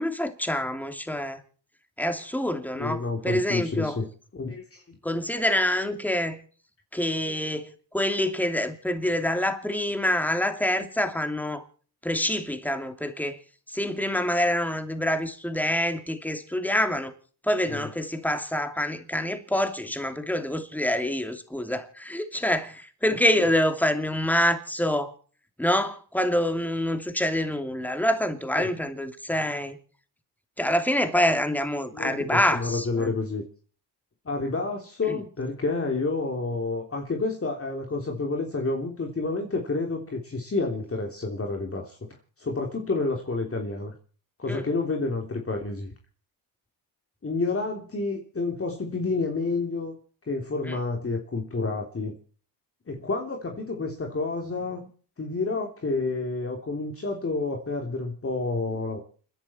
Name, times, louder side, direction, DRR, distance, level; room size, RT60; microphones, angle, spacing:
voice 1, 0.0-1.4 2.0-4.0 5.0-6.4 6.9-11.6 12.0-13.4 13.7-17.1 17.4-25.1 25.6-29.8 30.6-33.1 35.1-35.2 44.5-44.6 50.7-50.8, left 1 dB, 5° left, 2.7 m, -26 dB
voice 2, 2.7-4.1 4.3-4.8 7.3-7.5 17.7-17.9 28.5-28.7 31.9-33.4 34.2-42.0 42.4-43.9 44.4-45.9 47.2-49.9 50.3-52.1 52.9-54.9 55.2-59.0, left 3 dB, 35° left, 3.3 m, -29 dB
29.5 x 11.0 x 4.4 m
cardioid pair, 85°, 41 cm